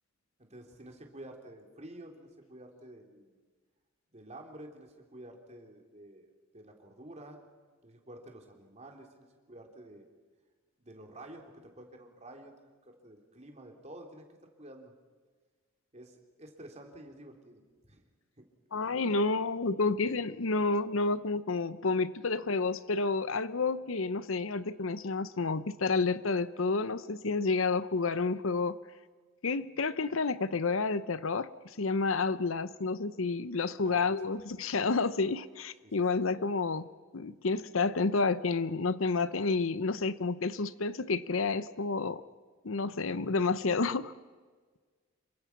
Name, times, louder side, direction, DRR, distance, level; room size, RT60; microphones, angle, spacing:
voice 1, 0.4-3.4 4.1-6.3 6.5-7.4 7.8-10.1 10.8-14.3 14.6-14.9 15.9-18.0 18.4-18.5 33.8-34.3 35.8-36.2, right 1 dB, 35° right, 2 dB, 3.3 m, -50 dB
voice 2, 18.7-28.8 29.4-31.5 31.8-36.9 37.1-42.2 42.6-44.1, left 3 dB, 70° left, 15 dB, 0.8 m, -30 dB
27.0 x 23.5 x 6.0 m, 1.5 s
head